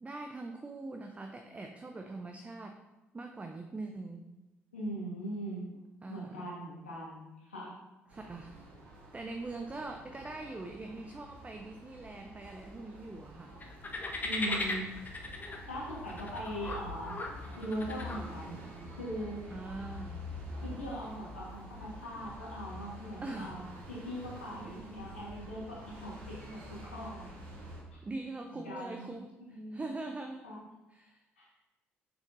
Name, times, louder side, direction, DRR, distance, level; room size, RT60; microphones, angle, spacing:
voice 1, 0.0-2.8 3.1-4.3 6.0-6.4 8.1-8.7 9.1-13.6 19.5-20.3 23.2-23.6 24.6-24.8 28.0-30.5 30.9-31.2, right 2 dB, 20° right, 5 dB, 0.5 m, -42 dB
voice 2, 4.7-5.7 6.1-7.7 14.2-14.9 15.7-17.2 17.6-18.5 19.0-19.4 20.6-27.3 27.9-28.0 28.6-29.1 29.4-29.9 30.4-30.6 31.4-31.5, equal, 80° left, -5 dB, 1.5 m, -40 dB
sound 1, 8.1-27.8, equal, 80° right, 1.9 m, -47 dB
sound 2, 13.6-18.6, left 2 dB, 25° left, 0.9 m, -38 dB
6.5 x 5.9 x 2.7 m, 1.0 s
figure-of-eight pair, 50°, 6 cm